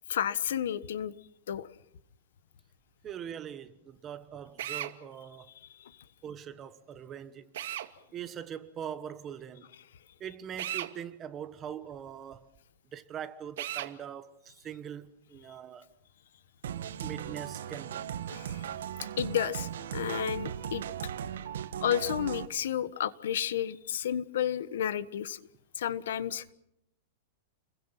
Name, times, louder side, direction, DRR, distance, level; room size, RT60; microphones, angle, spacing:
voice 1, 0.1-1.1 1.5-1.7 18.3-18.6 19.2-20.8 21.8-25.4 25.8-26.4, left 10 dB, 75° left, 1.4 m, -31 dB
voice 2, 3.0-5.5 6.2-7.5 8.1-9.7 10.2-12.5 12.9-15.9 17.0-18.1, right 9 dB, 20° right, 1.2 m, -42 dB
Drill, 4.6-4.9 7.5-7.9 10.6-10.9 13.6-13.9, right 12 dB, 60° right, 2.2 m, -35 dB
sound 1, 16.6-22.5, right 9 dB, 80° right, 1.8 m, -37 dB
30.0 x 22.5 x 5.9 m
supercardioid pair, 170°, 0 cm